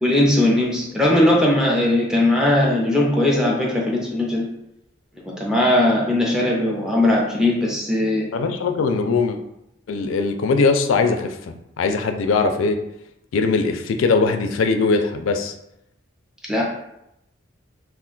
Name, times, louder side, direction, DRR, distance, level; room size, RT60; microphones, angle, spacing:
voice 1, 0.0-4.5 5.4-8.3 16.5-16.6, left 1 dB, 5° right, -3 dB, 0.5 m, -19 dB
voice 2, 8.3-9.4 9.9-12.8 13.3-15.5, left 4 dB, 90° left, 6 dB, 0.4 m, -20 dB
2.4 x 2.2 x 3.8 m, 0.82 s
head